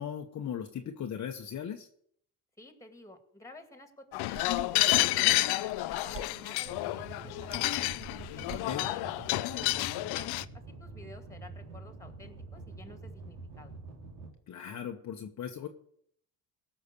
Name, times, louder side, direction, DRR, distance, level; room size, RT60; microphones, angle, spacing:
voice 1, 0.0-1.9 8.5-8.9 14.5-15.7, left 8 dB, 40° left, 3 dB, 1.1 m, -38 dB
voice 2, 2.6-7.9 8.3-13.7, left 2 dB, 5° left, 7 dB, 2.2 m, -52 dB
sound 1, 4.1-10.4, left 18 dB, 70° left, 0.6 m, -30 dB
sound 2, 4.3-4.9 5.4-6.3 6.7-6.8 7.5-8.6 9.4-9.8, right 6 dB, 30° right, 0.8 m, -48 dB
sound 3, 6.7-14.3, right 3 dB, 75° right, 2.9 m, -46 dB
16.5 x 6.0 x 6.8 m, 0.67 s
supercardioid pair, 85°, 41 cm